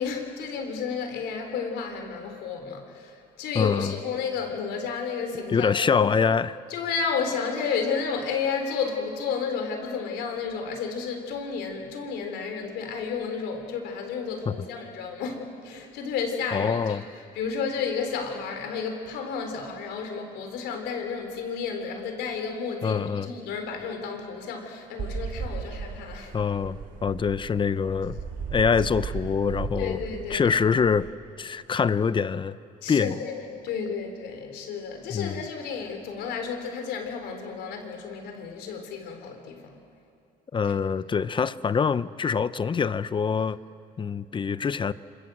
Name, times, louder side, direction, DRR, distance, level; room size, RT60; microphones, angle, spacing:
voice 1, 0.0-6.1 6.7-17.1 17.3-26.3 29.8-30.6 32.8-39.8, left 5 dB, 80° left, 4 dB, 4.1 m, -32 dB
voice 2, 3.5-3.9 5.5-6.5 14.5-14.6 16.5-17.0 22.8-23.3 26.3-28.2 28.5-30.0 30.3-31.1 31.4-32.6 32.9-33.1 35.1-35.4 40.5-43.6 44.0-44.9, left 6 dB, 30° left, 16 dB, 0.7 m, -25 dB
sound 1, 25.0-31.1, right 5 dB, 55° right, 4.1 m, -36 dB
27.0 x 26.5 x 7.8 m, 2.6 s
cardioid pair, 110°, 17 cm